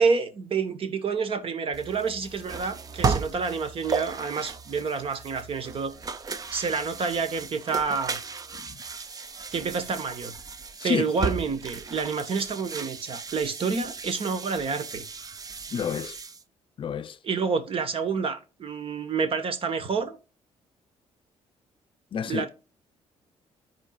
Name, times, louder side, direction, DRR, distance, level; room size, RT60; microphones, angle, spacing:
voice 1, 0.0-5.9 6.5-8.2 9.2-10.3 10.8-15.0 17.2-20.2 22.2-22.5, right 5 dB, 50° right, 1.2 m, -28 dB
sound 1, 1.7-16.4, right 5 dB, 30° right, 0.6 m, -35 dB
voice 2, 8.5-8.8 10.8-11.0 15.7-16.2 16.8-17.2 22.1-22.5, left 7 dB, 45° left, 0.5 m, -30 dB
13.5 x 4.5 x 2.4 m
cardioid pair, 100°, 12 cm